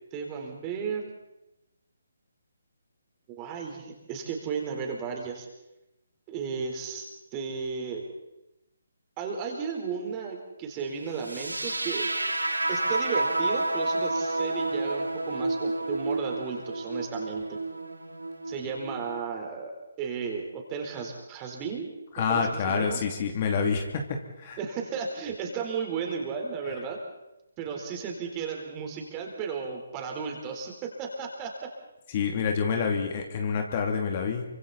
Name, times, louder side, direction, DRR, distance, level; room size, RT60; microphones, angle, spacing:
voice 1, 0.1-1.1 3.3-5.5 6.3-7.1 7.3-8.0 9.2-12.1 12.7-17.6 18.5-19.7 20.0-21.9 22.2-23.0 24.6-27.0 27.6-31.7, right 6 dB, 20° right, 1 dB, 4.2 m, -34 dB
sound 1, 11.2-19.2, right 2 dB, 90° right, 2.2 m, -30 dB
voice 2, 22.1-24.0 24.4-24.6 32.1-34.4, left 6 dB, 35° left, 3 dB, 2.9 m, -27 dB
28.0 x 25.0 x 4.3 m, 0.92 s
figure-of-eight pair, 145°, 0 cm